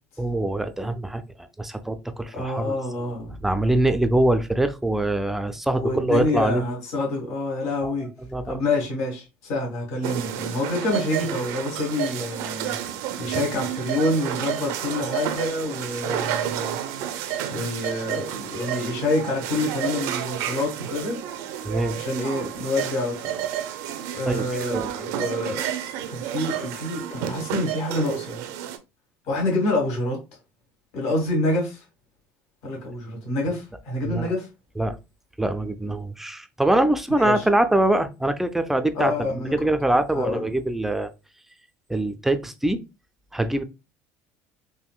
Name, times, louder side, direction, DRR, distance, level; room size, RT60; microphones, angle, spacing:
voice 1, 0.2-2.8 3.4-6.6 7.8-8.5 21.6-21.9 24.2-24.9 34.0-34.3 34.8-35.0 35.4-41.1 41.9-42.8 43.3-43.6, right 1 dB, 5° right, 0.3 m, -24 dB
voice 2, 2.3-3.3 5.7-8.1 8.4-12.7 13.2-16.8 17.5-21.2 21.9-23.2 24.1-25.6 26.0-28.5 29.2-30.2 30.9-31.8 32.6-34.5 37.2-37.4 38.9-39.6 40.1-40.4, left 2 dB, 65° left, 1.6 m, -27 dB
sound 1, 10.0-28.8, right 10 dB, 75° right, 0.4 m, -31 dB
3.5 x 2.6 x 2.2 m
cardioid pair, 125°, 6 cm